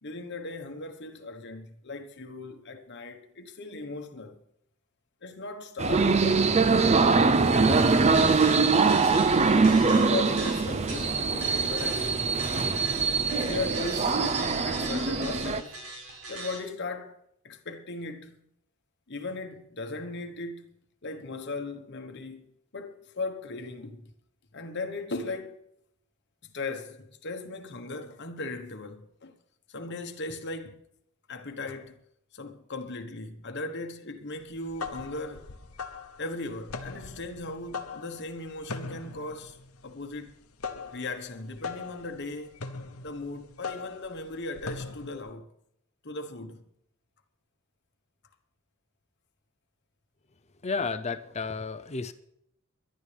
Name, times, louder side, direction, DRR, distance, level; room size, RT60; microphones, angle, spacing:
voice 1, 0.0-4.4 5.2-6.4 7.4-9.0 9.5-12.4 13.3-15.8 16.3-17.2 17.4-18.4 19.1-20.8 21.0-24.1 24.5-25.6 26.4-29.3 29.7-30.8 31.3-32.0 32.3-35.5 36.2-39.6 39.8-40.4 40.9-42.6 43.0-45.5 46.0-46.6, left 3 dB, 50° left, 1.3 m, -38 dB
sound 1, 5.8-15.6, right 4 dB, 30° right, 0.5 m, -23 dB
sound 2, 8.1-16.6, right 3 dB, 75° right, 5.4 m, -41 dB
sound 3, 34.5-45.3, left 4 dB, 75° left, 0.9 m, -40 dB
voice 2, 50.6-52.1, left 4 dB, 30° left, 0.6 m, -32 dB
24.0 x 11.5 x 3.4 m
head